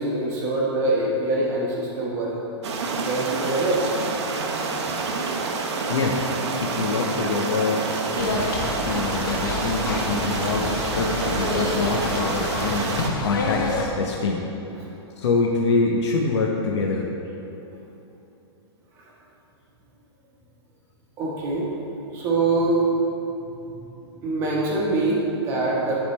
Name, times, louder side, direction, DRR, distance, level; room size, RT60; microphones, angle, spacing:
voice 1, 0.0-2.3 3.0-3.8 5.1-5.2 21.2-21.7 22.1-22.8 24.2-26.0, right 2 dB, 20° right, -4 dB, 1.0 m, -24 dB
sound 1, 2.6-13.1, right 4 dB, 75° right, 0.9 m, -28 dB
voice 2, 6.6-7.8 8.1-14.5 15.2-17.1, left 4 dB, 75° left, -1 dB, 0.8 m, -25 dB
sound 2, 8.2-13.8, left 3 dB, 45° left, 0.8 m, -28 dB
10.0 x 3.7 x 4.3 m, 3.0 s
hypercardioid pair, 170°, 15 cm